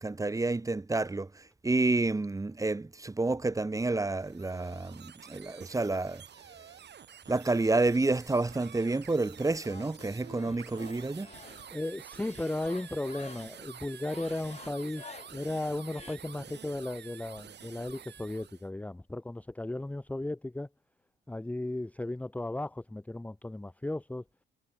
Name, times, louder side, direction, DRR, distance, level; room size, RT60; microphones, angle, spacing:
voice 1, 0.0-6.2 7.3-11.3, right 2 dB, 15° right, 1.5 m, -29 dB
sound 1, 4.0-18.7, right 9 dB, 60° right, 5.1 m, -50 dB
sound 2, 4.7-5.5 6.4-7.5 7.8-16.2, left 5 dB, 35° left, 4.4 m, -53 dB
voice 2, 11.7-20.7 21.3-24.2, left 2 dB, 5° left, 0.8 m, -35 dB
cardioid pair, 90°, 20 cm